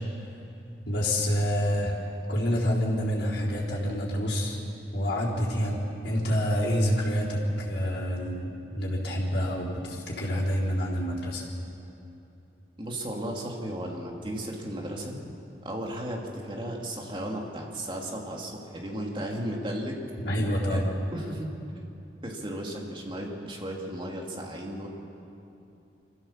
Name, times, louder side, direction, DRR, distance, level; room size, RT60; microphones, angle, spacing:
voice 1, 0.9-1.9 2.3-4.6 4.9-11.4 20.2-20.9, equal, 75° left, -6 dB, 3.9 m, -27 dB
voice 2, 12.8-15.2 15.6-20.0 20.7-20.8 21.1-21.5 22.2-24.9, right 1 dB, 30° right, -1 dB, 2.6 m, -35 dB
25.5 x 15.0 x 7.3 m, 2.8 s
head